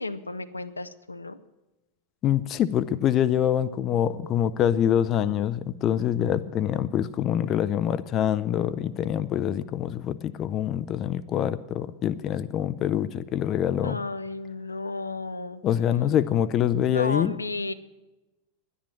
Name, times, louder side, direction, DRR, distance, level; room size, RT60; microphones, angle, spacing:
voice 1, 0.0-1.4 13.8-15.6 16.7-17.7, left 2 dB, 80° left, 11 dB, 0.6 m, -33 dB
voice 2, 2.2-14.0 15.6-17.3, left 10 dB, 30° left, 14 dB, 0.6 m, -25 dB
11.0 x 10.5 x 7.4 m, 1.0 s
figure-of-eight pair, 90°, 0 cm